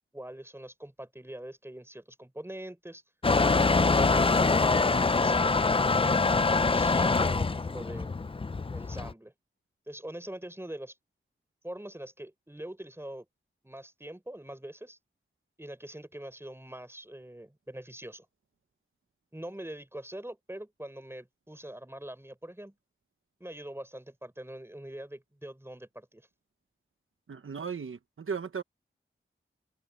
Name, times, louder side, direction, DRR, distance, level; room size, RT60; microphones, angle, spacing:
voice 1, 0.0-3.0 3.5-8.1 8.7-9.3 9.9-11.0 11.6-13.3 13.6-15.0 15.6-18.3 19.3-22.7 23.4-26.3, right 1 dB, 10° right, 6.2 m, -43 dB
Motor vehicle (road) / Engine starting / Accelerating revving vroom, 3.2-9.1, left 3 dB, 25° left, 0.4 m, -24 dB
voice 2, 27.3-28.6, right 6 dB, 80° right, 1.0 m, -36 dB
open air
wide cardioid pair, 85°, 21 cm